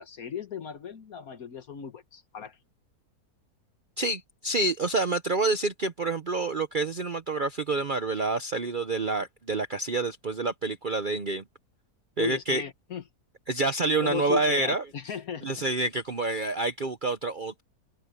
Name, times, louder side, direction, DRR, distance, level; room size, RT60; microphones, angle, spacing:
voice 1, 0.0-2.6 12.2-13.0 14.0-15.6, left 7 dB, 70° left, 1.7 m, -36 dB
voice 2, 4.0-11.4 12.2-12.6 13.5-14.8 15.4-17.6, right 3 dB, 40° right, 0.8 m, -28 dB
omnidirectional pair, 1.6 m